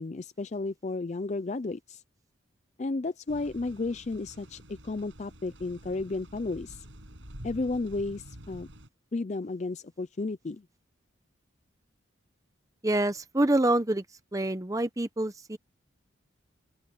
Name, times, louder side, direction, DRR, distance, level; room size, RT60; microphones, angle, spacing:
voice 1, 0.0-2.0 2.8-6.8 7.4-8.7 9.1-10.6, left 3 dB, 35° left, 0.4 m, -33 dB
sound 1, 3.3-8.9, equal, 70° right, 6.4 m, -48 dB
voice 2, 12.8-14.0 14.3-15.6, right 1 dB, 15° right, 0.8 m, -26 dB
open air
head